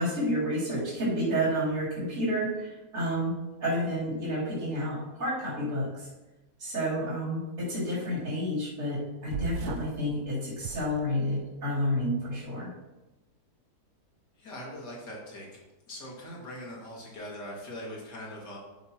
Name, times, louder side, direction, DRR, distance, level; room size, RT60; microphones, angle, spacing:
voice 1, 0.0-6.1 6.6-12.7, equal, 55° right, -10 dB, 4.0 m, -30 dB
sound 1, 9.3-10.0 10.6-11.5, right 6 dB, 75° right, 1.2 m, -36 dB
voice 2, 14.4-15.6 15.9-18.6, left 1 dB, 85° left, -3 dB, 2.9 m, -41 dB
12.0 x 8.3 x 3.0 m, 1.1 s
omnidirectional pair, 1.8 m